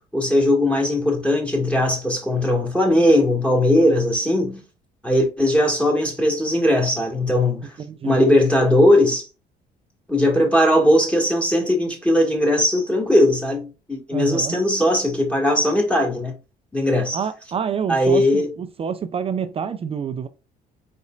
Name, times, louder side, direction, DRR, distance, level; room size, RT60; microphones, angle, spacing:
voice 1, 0.1-4.6 5.0-7.7 8.0-9.3 10.1-16.3 16.7-17.2 17.9-18.5, left 1 dB, 5° left, 1.8 m, -19 dB
voice 2, 7.6-8.2 14.1-14.6 17.1-20.3, right 7 dB, 35° right, 0.4 m, -28 dB
4.2 x 4.1 x 2.4 m
cardioid pair, 110°, 17 cm